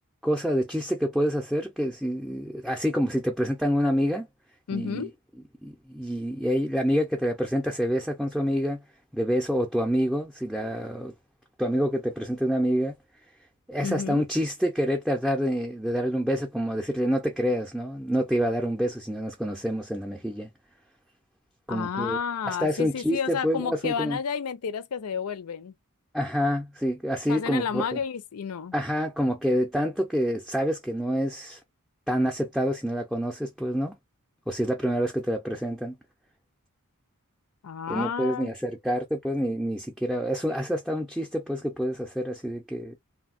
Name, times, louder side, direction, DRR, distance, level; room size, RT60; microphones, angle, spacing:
voice 1, 0.2-4.3 4.7-5.1 5.6-8.8 9.1-11.1 11.6-12.9 13.7-20.5 21.7-24.2 26.1-28.0 28.7-31.6 32.1-33.9 34.5-36.0 37.9-43.0, equal, ahead, 0.5 m, -27 dB
voice 2, 4.7-5.1 13.8-14.2 21.7-25.7 27.3-28.7 37.6-38.5, left 6 dB, 80° left, 0.5 m, -31 dB
3.3 x 2.2 x 2.4 m
head